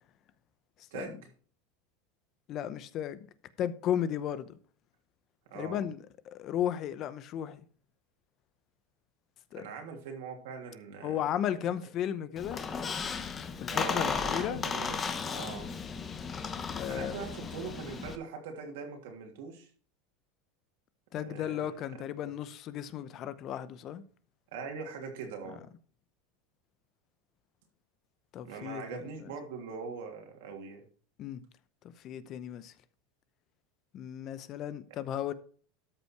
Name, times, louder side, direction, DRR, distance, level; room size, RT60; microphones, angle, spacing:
voice 1, 0.9-1.3 5.5-5.8 9.6-11.3 13.7-15.0 15.3-15.7 16.9-19.7 21.2-21.7 22.0-22.1 24.5-25.6 28.4-30.8, right 5 dB, 75° right, 2.9 m, -42 dB
voice 2, 2.5-3.3 3.6-4.6 5.5-7.6 9.5-9.7 11.0-12.6 13.6-14.6 16.8-17.2 21.1-24.0 28.3-29.0 31.2-31.4 32.0-32.7 33.9-35.3, left 10 dB, 40° left, 0.8 m, -35 dB
Squeak, 12.4-18.2, left 5 dB, 25° left, 1.0 m, -35 dB
13.0 x 5.4 x 4.7 m
supercardioid pair, 130°, 0 cm